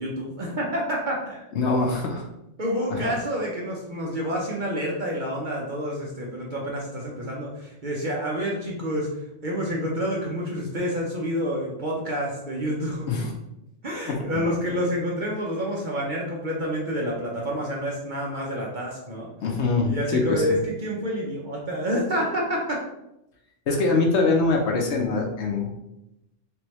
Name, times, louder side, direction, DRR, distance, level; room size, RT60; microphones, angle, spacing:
voice 1, 0.0-1.5 2.6-13.3 13.8-19.3 19.8-22.8, equal, 50° right, -3 dB, 0.6 m, -28 dB
voice 2, 1.5-2.3 3.0-3.1 13.1-13.3 14.1-14.8 19.4-20.4 23.7-25.7, left 3 dB, 65° left, 1 dB, 0.9 m, -24 dB
3.4 x 3.1 x 3.0 m, 0.88 s
omnidirectional pair, 1.3 m